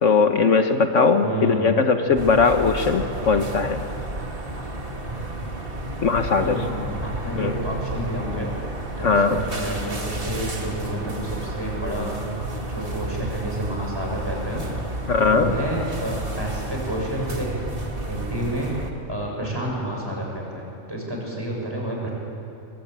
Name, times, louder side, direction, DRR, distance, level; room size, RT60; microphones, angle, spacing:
voice 1, 0.0-3.8 6.0-6.6 7.3-7.6 9.0-9.4 15.1-15.5, left 4 dB, 65° left, 6 dB, 1.5 m, -19 dB
voice 2, 1.2-1.8 5.0-5.2 6.4-8.5 9.0-12.1 12.7-14.6 15.1-17.6 18.1-18.7 19.1-22.1, right 1 dB, 20° right, -2 dB, 6.5 m, -30 dB
sound 1, 2.1-18.9, right 1 dB, 45° right, 2.4 m, -31 dB
25.0 x 23.5 x 8.9 m, 2.9 s
omnidirectional pair, 1.4 m